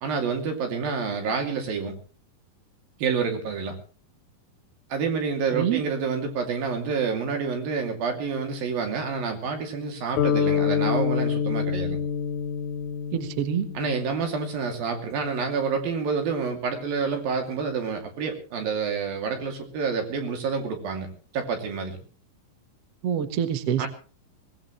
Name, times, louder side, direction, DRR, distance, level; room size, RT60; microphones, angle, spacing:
voice 1, 0.0-1.9 3.0-3.8 4.9-12.0 13.7-21.1 21.3-22.0 23.8-23.9, right 5 dB, 75° right, 4 dB, 4.5 m, -28 dB
sound 1, 10.2-14.4, left 7 dB, 75° left, 3.4 m, -26 dB
voice 2, 13.1-13.7 23.0-23.9, right 9 dB, 55° right, 9 dB, 1.9 m, -26 dB
22.5 x 18.5 x 3.2 m, 0.36 s
omnidirectional pair, 4.3 m